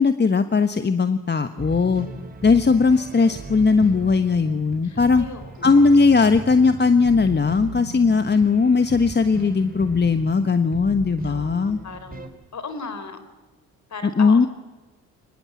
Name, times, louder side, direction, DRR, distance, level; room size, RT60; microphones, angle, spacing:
voice 1, 0.0-2.1 2.4-5.2 5.6-11.8 14.2-14.5, left 4 dB, 30° left, 10 dB, 1.2 m, -18 dB
sound 1, 1.6-12.3, right 4 dB, 25° right, 4.1 m, -37 dB
voice 2, 4.8-5.9 11.2-13.2 13.9-14.5, left 4 dB, 50° left, 10 dB, 3.8 m, -37 dB
24.0 x 21.0 x 8.5 m, 1.2 s
hypercardioid pair, 50°, 37 cm